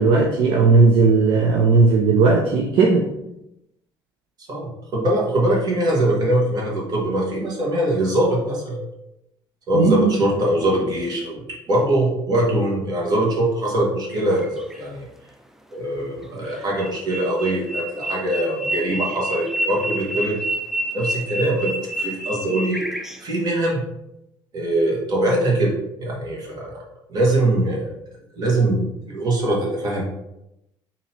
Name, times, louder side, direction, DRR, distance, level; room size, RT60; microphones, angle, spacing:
voice 1, 0.0-3.1 9.7-10.1, right 4 dB, 65° right, 1 dB, 0.6 m, -16 dB
voice 2, 4.5-8.8 9.7-11.4 11.7-15.0 15.7-20.4 20.9-22.8 23.2-23.8 24.5-25.7 26.0-26.8 27.1-27.9 28.3-30.0, right 1 dB, 45° right, -3 dB, 1.6 m, -22 dB
sound 1, 14.1-14.8 16.5-23.4, right 1 dB, 5° right, 0.4 m, -29 dB
3.8 x 2.9 x 4.4 m, 0.86 s
cardioid pair, 115°, 9 cm